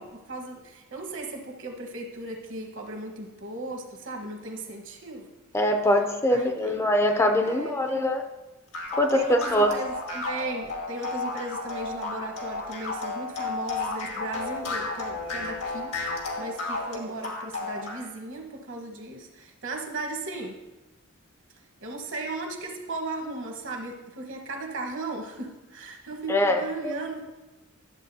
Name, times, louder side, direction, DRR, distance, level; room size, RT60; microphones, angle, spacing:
voice 1, 0.0-5.3 6.3-6.9 7.4-8.1 9.1-20.6 21.8-27.3, right 2 dB, 60° right, 2 dB, 1.3 m, -36 dB
voice 2, 5.5-8.2 8.9-9.7 26.3-26.9, left 1 dB, 10° left, 6 dB, 0.5 m, -23 dB
sound 1, 8.7-18.0, left 3 dB, 85° left, 1.7 m, -32 dB
12.0 x 7.4 x 2.8 m, 1.1 s
head